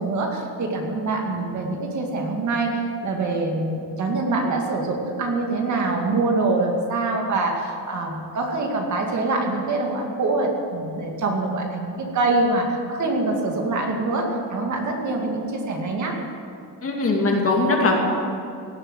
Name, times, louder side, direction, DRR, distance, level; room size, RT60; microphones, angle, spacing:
voice 1, 0.0-16.2, right 2 dB, 45° right, 1 dB, 2.3 m, -24 dB
voice 2, 16.8-17.9, left 2 dB, 35° left, 0 dB, 2.6 m, -20 dB
17.5 x 8.3 x 9.1 m, 2.5 s
cardioid pair, 155°, 39 cm